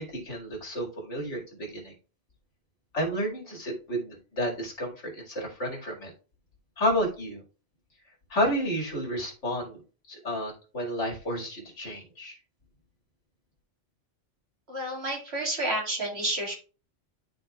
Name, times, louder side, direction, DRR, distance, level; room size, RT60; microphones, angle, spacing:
voice 1, 0.0-1.9 2.9-6.1 6.8-7.4 8.3-9.8 10.1-12.4, equal, 90° left, 0 dB, 2.5 m, -31 dB
voice 2, 14.7-16.5, right 1 dB, 65° right, -1 dB, 2.3 m, -30 dB
12.0 x 4.1 x 2.3 m, 0.35 s
omnidirectional pair, 1.2 m